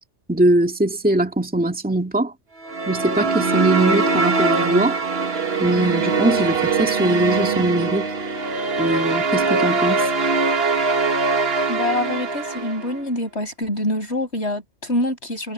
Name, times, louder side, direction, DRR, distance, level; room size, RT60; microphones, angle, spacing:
voice 1, 0.3-2.3 2.9-5.0 5.6-8.1 8.8-10.1, right 1 dB, 5° right, 2.2 m, -21 dB
sound 1, 2.6-13.0, right 4 dB, 60° right, 1.7 m, -22 dB
voice 2, 11.7-15.5, left 1 dB, 65° left, 8.4 m, -25 dB
omnidirectional pair, 1.2 m